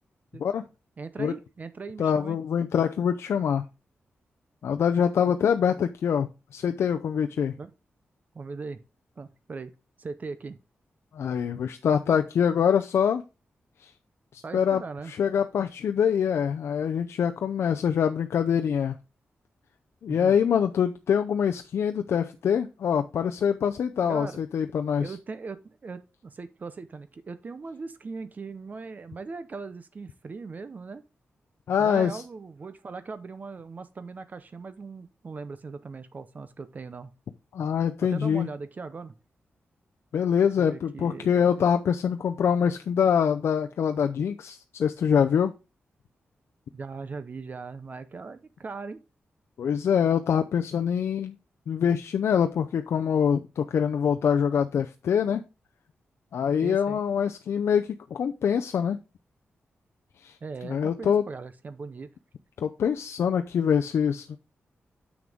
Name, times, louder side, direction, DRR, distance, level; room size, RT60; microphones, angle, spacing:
voice 1, 1.0-2.4 5.7-5.8 7.6-7.7 8.3-8.8 9.2-9.7 10.0-10.6 14.4-15.1 20.1-20.4 24.1-24.4 25.0-31.0 31.8-37.1 38.0-39.1 40.6-41.7 46.7-49.0 56.6-57.0 60.4-62.1, right 4 dB, 40° right, 0.7 m, -39 dB
voice 2, 2.0-3.6 4.6-7.5 11.1-13.2 13.8-13.9 14.3-14.8 15.1-19.0 20.0-25.1 31.7-32.2 37.5-38.5 40.1-45.5 49.6-51.4 51.7-55.4 56.3-59.0 60.2-60.4 60.6-61.2 62.6-64.4, left 7 dB, 85° left, 0.5 m, -24 dB
7.2 x 6.1 x 3.5 m
wide cardioid pair, 125°, 4 cm